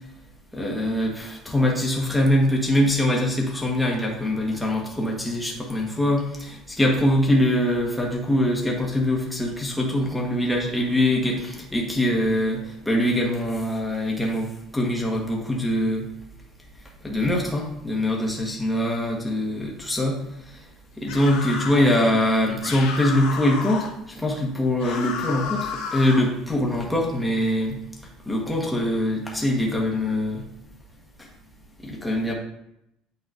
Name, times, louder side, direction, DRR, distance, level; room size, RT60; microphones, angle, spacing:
voice 1, 0.5-16.0 17.0-20.2 21.0-27.8 28.3-30.4 31.8-32.3, left 1 dB, 5° left, -2 dB, 1.3 m, -23 dB
sound 1, 21.1-21.9 22.6-23.9 24.8-26.3, left 6 dB, 90° left, 1.1 m, -32 dB
8.8 x 4.9 x 2.6 m, 0.81 s
cardioid pair, 150°, 0 cm